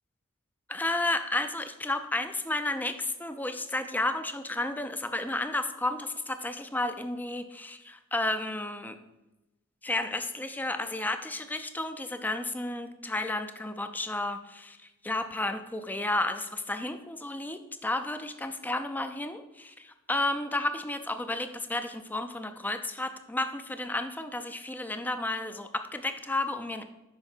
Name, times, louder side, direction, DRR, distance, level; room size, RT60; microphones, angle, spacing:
voice 1, 0.7-9.0 9.8-26.8, left 2 dB, 10° left, 9 dB, 0.4 m, -32 dB
5.5 x 4.9 x 4.4 m, 1.0 s
head